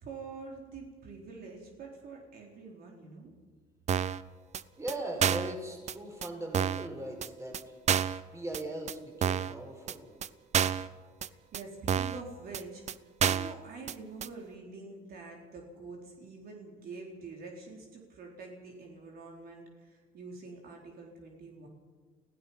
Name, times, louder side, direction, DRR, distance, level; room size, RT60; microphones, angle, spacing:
voice 1, 0.0-3.3 11.3-21.7, right 3 dB, 60° right, 0 dB, 4.0 m, -46 dB
sound 1, 3.9-4.2 4.5-4.6 4.9-5.0 5.2-5.5 5.9-6.0 6.2-6.3 6.5-6.9 7.2-7.3 7.5-7.6 7.9-8.2 8.5-8.6 8.9-9.0 9.2-9.5 9.9-10.0 10.2-10.3 10.5-10.9 11.2-11.3 11.5-11.6 11.9-12.2 12.5-12.6 12.9-13.0 13.2-13.5 13.9-14.0 14.2-14.3, right 8 dB, 40° right, 0.7 m, -29 dB
voice 2, 4.8-7.7 8.3-10.1, right 1 dB, 15° right, 2 dB, 5.3 m, -39 dB
29.0 x 16.0 x 5.7 m, 1.5 s
cardioid pair, 110°, 17 cm